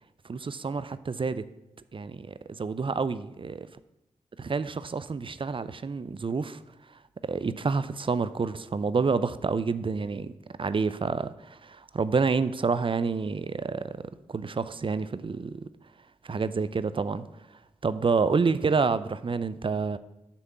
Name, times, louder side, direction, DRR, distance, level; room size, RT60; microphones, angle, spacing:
voice 1, 0.3-1.5 1.9-2.3 2.6-3.7 4.4-6.6 7.2-10.3 10.6-14.0 14.3-15.7 16.2-17.3 17.8-20.0, right 4 dB, 40° right, 14 dB, 0.5 m, -28 dB
9.8 x 3.6 x 6.8 m, 0.97 s
cardioid pair, 40°, 13 cm